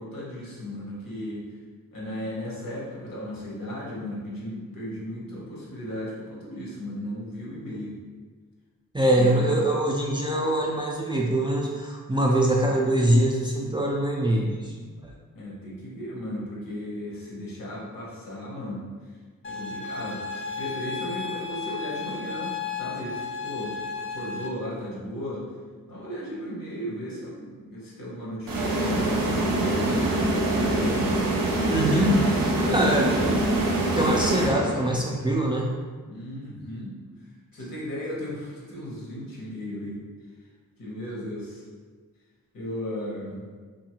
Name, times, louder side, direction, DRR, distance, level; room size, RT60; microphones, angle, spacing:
voice 1, 0.0-1.4 1.9-7.9 9.2-9.5 15.3-18.8 19.4-20.3 20.6-25.5 25.9-30.0 30.5-31.0 32.3-32.4 32.6-33.5 36.1-36.9 37.5-40.0 40.8-41.6 42.5-43.5, equal, 75° left, -5 dB, 0.9 m, -35 dB
voice 2, 8.9-14.9 31.7-32.3 32.7-33.2 33.9-35.7, right 1 dB, 15° right, -2 dB, 0.3 m, -23 dB
sound 1, 19.4-24.5, left 5 dB, 35° left, 0.5 m, -34 dB
sound 2, 28.5-35.1, right 1 dB, 75° right, 0.6 m, -24 dB
2.6 x 2.4 x 2.8 m, 1.5 s
cardioid pair, 55°, 35 cm